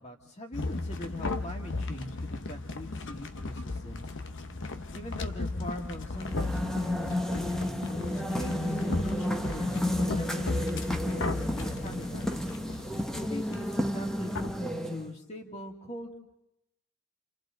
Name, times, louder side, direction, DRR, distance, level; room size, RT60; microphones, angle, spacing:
voice 1, 0.0-4.2 4.9-7.8 8.3-12.5 13.1-14.3 14.8-16.2, left 1 dB, 30° left, 2 dB, 2.4 m, -42 dB
sound 1, 0.5-14.6, left 2 dB, 55° left, 1.0 m, -36 dB
sound 2, 6.2-15.1, left 1 dB, ahead, 1.1 m, -32 dB
30.0 x 28.5 x 3.9 m, 0.88 s
head